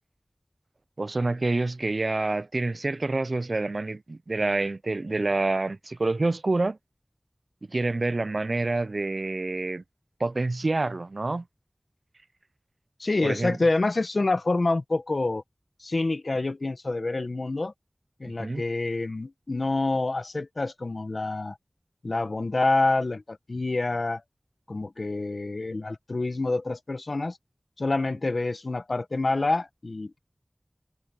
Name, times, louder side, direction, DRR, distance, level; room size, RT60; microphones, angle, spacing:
voice 1, 1.0-6.8 7.7-9.8 10.2-11.4 13.2-13.6 18.4-18.6, right 2 dB, 75° right, 0.4 m, -27 dB
voice 2, 13.0-15.4 15.8-17.7 18.2-21.6 22.0-24.2 24.7-27.4 27.8-30.2, left 2 dB, 80° left, 1.3 m, -27 dB
wide cardioid pair, 50°, 0 cm